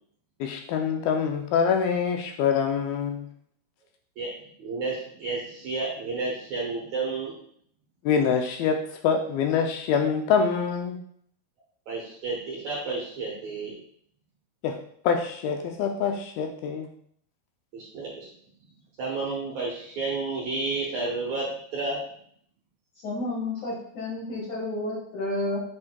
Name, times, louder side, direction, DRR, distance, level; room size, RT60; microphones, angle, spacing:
voice 1, 0.4-3.3 8.1-11.0 14.6-14.8 15.1-16.9, left 6 dB, 80° left, 4 dB, 2.3 m, -25 dB
voice 2, 4.6-7.3 11.9-13.8 17.7-18.3 19.0-21.5 21.7-22.0, right 3 dB, 65° right, -3 dB, 1.9 m, -31 dB
voice 3, 23.0-25.6, left 2 dB, 55° left, -8 dB, 2.6 m, -31 dB
8.3 x 5.2 x 2.2 m, 0.64 s
omnidirectional pair, 4.5 m